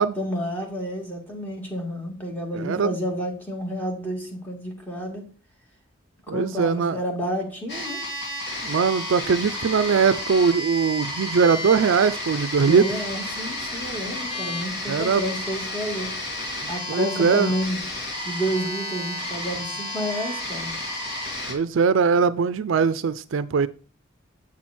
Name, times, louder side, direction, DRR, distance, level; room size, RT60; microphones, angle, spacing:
voice 1, 0.2-5.2 6.3-8.0 12.6-16.1 16.7-17.8 18.2-20.7, equal, 10° left, -1 dB, 2.1 m, -30 dB
voice 2, 2.5-3.0 6.3-7.0 8.6-12.9 14.8-15.2 16.9-17.5 21.5-23.7, right 5 dB, 65° right, 15 dB, 0.4 m, -21 dB
sound 1, 7.7-21.5, left 1 dB, 55° left, 2.5 m, -31 dB
8.5 x 6.1 x 4.3 m, 0.37 s
head